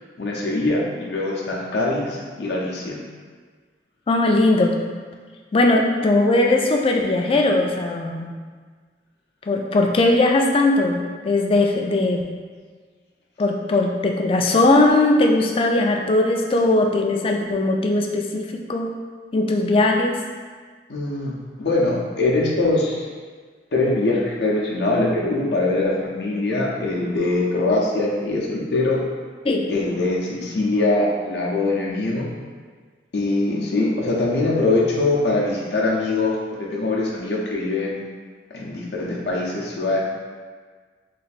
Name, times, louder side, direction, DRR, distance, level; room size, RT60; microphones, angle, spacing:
voice 1, 0.2-3.0 20.9-21.3 21.6-23.1 23.7-29.0 29.7-32.3 33.1-38.0 38.5-40.0, left 2 dB, 65° left, -3 dB, 0.6 m, -22 dB
voice 2, 4.1-4.8 5.5-8.3 9.4-12.2 13.4-18.9 19.3-20.2 29.4-29.6, left 2 dB, 30° left, 2 dB, 0.3 m, -19 dB
3.2 x 2.6 x 4.1 m, 1.5 s
head